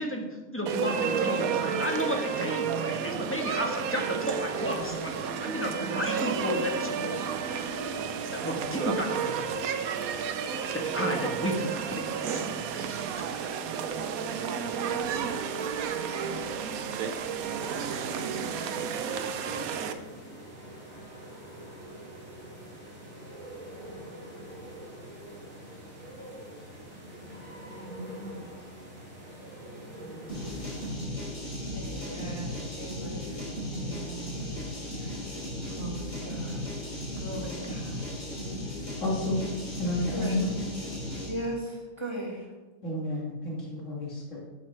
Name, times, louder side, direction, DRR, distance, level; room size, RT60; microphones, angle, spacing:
voice 1, 0.0-7.2 8.3-9.5 10.7-13.4, equal, 10° left, 1 dB, 1.2 m, -33 dB
sound 1, 0.7-19.9, right 6 dB, 85° right, 1.2 m, -31 dB
sound 2, 17.6-30.9, right 1 dB, 55° right, 2.8 m, -44 dB
sound 3, 30.3-41.4, left 1 dB, 80° left, 4.2 m, -36 dB
voice 2, 31.7-34.4 35.0-35.1 35.7-36.6 37.2-38.0 40.1-40.4 41.3-42.5, right 1 dB, 20° right, -1 dB, 2.0 m, -38 dB
voice 3, 39.0-39.5 39.8-40.7 42.8-44.4, left 1 dB, 60° left, -4 dB, 2.5 m, -31 dB
12.5 x 7.6 x 3.3 m, 1.3 s
omnidirectional pair, 1.5 m